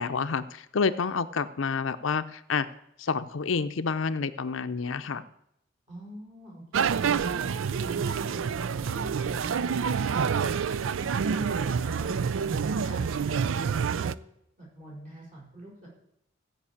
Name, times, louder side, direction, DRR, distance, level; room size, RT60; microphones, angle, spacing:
voice 1, 0.0-2.7 3.0-5.2, left 5 dB, 80° left, 11 dB, 0.6 m, -29 dB
voice 2, 5.9-9.7 10.2-10.6 11.0-14.1 14.6-15.9, right 1 dB, 40° right, -4 dB, 5.5 m, -43 dB
sound 1, 6.7-14.1, right 6 dB, 80° right, 0.4 m, -28 dB
15.5 x 5.4 x 8.5 m, 0.77 s
head